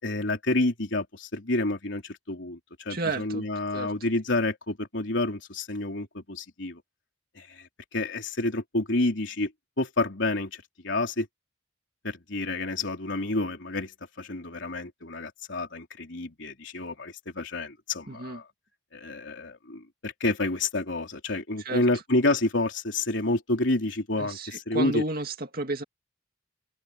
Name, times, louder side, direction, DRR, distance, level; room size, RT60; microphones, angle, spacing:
voice 1, 0.0-6.8 7.4-7.7 7.9-9.5 9.8-11.3 12.0-13.9 14.2-18.4 18.9-25.0, left 2 dB, 70° left, 3.7 m, -29 dB
voice 2, 2.9-3.5 3.7-3.9 18.1-18.4 21.6-21.8 24.2-25.8, right 2 dB, 50° right, 2.2 m, -32 dB
head